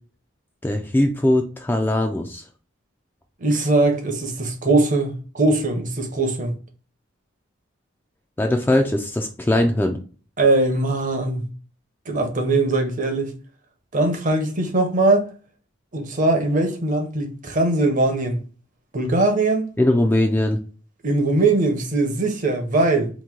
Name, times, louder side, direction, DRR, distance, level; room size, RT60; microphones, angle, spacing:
voice 1, 0.6-2.4 8.4-10.0 19.8-20.6, left 1 dB, 10° left, 0.3 m, -20 dB
voice 2, 3.4-6.5 10.4-11.5 12.1-13.3 13.9-15.3 15.9-18.4 18.9-19.7 21.0-23.1, right 2 dB, 40° right, 0.7 m, -21 dB
3.0 x 2.6 x 3.6 m
head